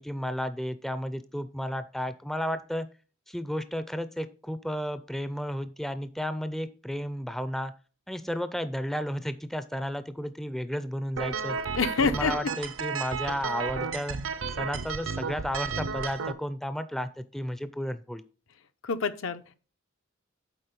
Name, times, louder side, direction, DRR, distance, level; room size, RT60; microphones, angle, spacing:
voice 1, 0.0-2.9 3.3-7.7 8.1-11.6 12.0-14.2 14.5-18.2, equal, ahead, 0.4 m, -33 dB
sound 1, 11.2-16.3, right 5 dB, 75° right, 0.7 m, -33 dB
voice 2, 11.7-12.3 18.8-19.4, left 5 dB, 75° left, 0.6 m, -26 dB
8.7 x 4.0 x 5.2 m
head